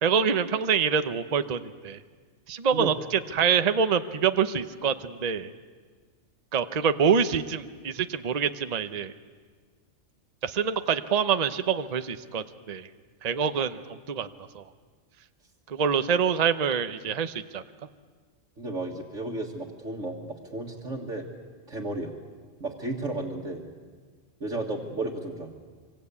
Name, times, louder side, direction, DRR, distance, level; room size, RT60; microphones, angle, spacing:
voice 1, 0.0-2.0 2.5-2.9 3.3-5.5 6.5-9.1 10.4-12.9 13.2-14.3 14.5-14.6 15.7-17.6, right 6 dB, 35° right, 10 dB, 0.8 m, -26 dB
voice 2, 18.6-21.3 21.7-22.1 22.6-23.6 24.4-25.6, right 2 dB, 70° right, -4 dB, 2.2 m, -33 dB
26.0 x 25.0 x 8.4 m, 1.5 s
omnidirectional pair, 1.3 m